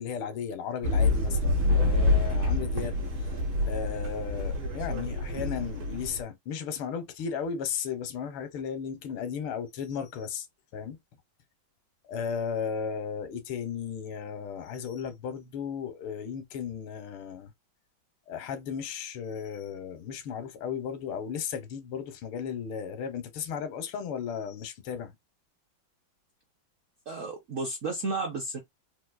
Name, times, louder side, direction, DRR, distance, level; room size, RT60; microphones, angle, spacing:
voice 1, 0.0-1.4 1.6-3.0 3.6-10.5 10.7-11.0 12.0-17.5 18.3-25.1, left 7 dB, 85° left, 1.7 m, -35 dB
sound 1, 0.8-6.2, left 2 dB, 80° right, 2.0 m, -27 dB
voice 2, 27.1-28.6, right 3 dB, 65° right, 0.8 m, -32 dB
4.3 x 2.5 x 2.3 m
omnidirectional pair, 2.3 m